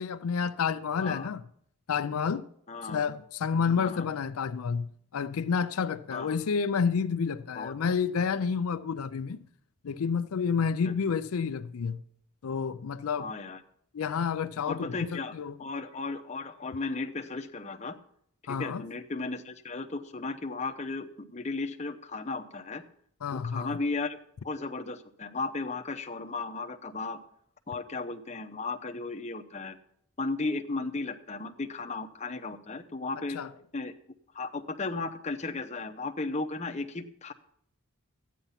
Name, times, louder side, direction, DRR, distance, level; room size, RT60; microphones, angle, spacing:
voice 1, 0.0-1.4 1.9-2.5 2.8-9.5 9.8-12.0 12.4-13.3 13.9-15.5 18.5-18.8 23.2-23.8 33.3-33.5, left 6 dB, 80° left, 0.4 m, -30 dB
voice 2, 0.9-1.3 2.7-3.1 3.8-4.1 6.1-6.4 7.5-7.7 10.8-10.9 13.2-13.6 14.7-15.3 15.6-18.0 18.4-22.8 23.3-24.2 24.4-27.2 27.7-29.8 30.2-33.4 33.7-33.9 34.3-37.3, left 3 dB, 30° left, 0.8 m, -35 dB
13.0 x 9.2 x 5.7 m
head